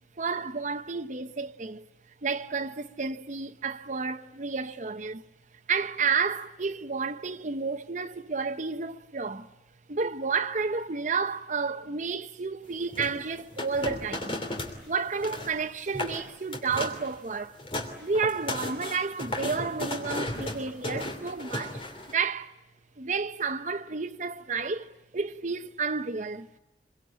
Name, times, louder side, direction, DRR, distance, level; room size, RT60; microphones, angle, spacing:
voice 1, 0.2-1.8 2.2-5.2 5.7-9.5 9.9-14.4 14.9-17.6 18.0-22.5 23.0-26.6, right 5 dB, 45° right, 0.9 m, -31 dB
sound 1, 12.9-14.8 15.1-15.5 15.9-16.2 16.5-17.1 17.4-22.1, left 1 dB, 30° left, 3.1 m, -34 dB
25.5 x 23.5 x 8.7 m
head